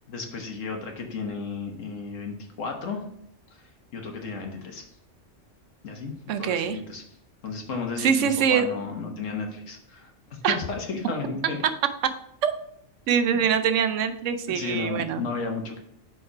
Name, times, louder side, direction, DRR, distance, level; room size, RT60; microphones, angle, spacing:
voice 1, 0.1-3.0 3.9-4.8 5.8-6.1 6.4-7.0 7.4-10.1 10.5-11.6 13.3-13.4 14.5-15.8, left 4 dB, 75° left, 3 dB, 1.5 m, -33 dB
voice 2, 6.3-6.8 8.0-8.6 10.4-10.6 12.4-12.5 13.1-15.2, right 7 dB, 75° right, 10 dB, 1.0 m, -23 dB
5.4 x 4.7 x 4.6 m, 0.71 s
omnidirectional pair, 1.3 m